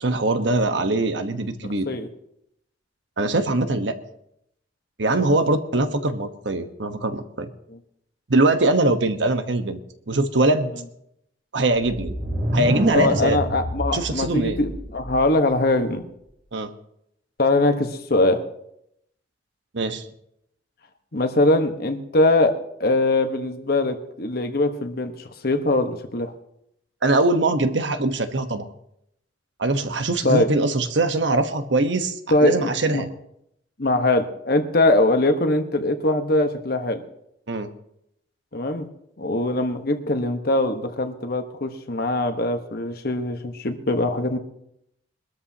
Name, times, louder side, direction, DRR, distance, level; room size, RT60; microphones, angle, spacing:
voice 1, 0.0-1.9 3.2-3.9 5.0-7.5 8.3-9.8 10.1-10.7 11.5-12.1 12.5-13.4 13.9-14.6 16.5-16.7 19.7-20.1 27.0-28.6 29.6-33.1 37.5-37.7, right 2 dB, 75° right, 8 dB, 1.2 m, -22 dB
sound 1, 11.8-15.5, equal, 50° right, 3.9 m, -27 dB
voice 2, 12.9-16.0 17.4-18.4 21.1-22.5 22.8-25.1 25.4-26.3 30.2-30.5 32.3-33.0 33.8-37.0 38.5-38.9 39.2-44.4, left 2 dB, 55° left, 6 dB, 1.2 m, -22 dB
22.5 x 13.0 x 2.9 m, 0.77 s
head